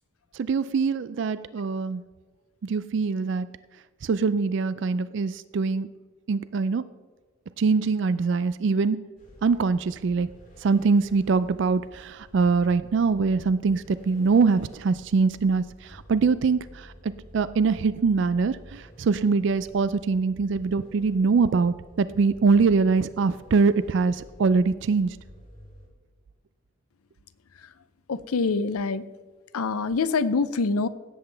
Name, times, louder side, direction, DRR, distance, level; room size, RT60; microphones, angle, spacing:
voice 1, 0.3-2.0 2.6-3.5 4.0-5.9 6.3-6.9 7.6-9.0 9.4-10.3 10.6-25.2, right 4 dB, 55° right, 15 dB, 0.3 m, -23 dB
sound 1, 9.2-25.9, equal, 40° left, 4.1 m, -50 dB
voice 2, 28.1-29.0 29.5-30.9, left 4 dB, 90° left, 14 dB, 0.6 m, -25 dB
17.0 x 7.9 x 3.4 m, 1.4 s
head